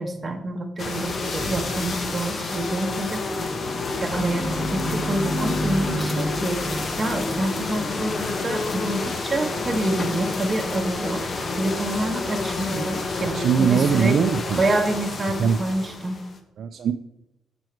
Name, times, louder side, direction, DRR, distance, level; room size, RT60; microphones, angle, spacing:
voice 1, 0.0-3.2 4.0-6.6 7.0-11.2 11.6-14.1 14.6-16.2, right 2 dB, 25° right, 2 dB, 1.2 m, -27 dB
sound 1, 0.8-16.4, left 3 dB, 40° left, 1.0 m, -29 dB
sound 2, 3.5-8.7, equal, 15° left, 1.5 m, -31 dB
voice 2, 13.2-14.6 15.4-15.6 16.6-16.9, right 7 dB, 60° right, 7 dB, 0.4 m, -21 dB
7.8 x 6.1 x 4.5 m, 0.91 s
cardioid pair, 90°, 0 cm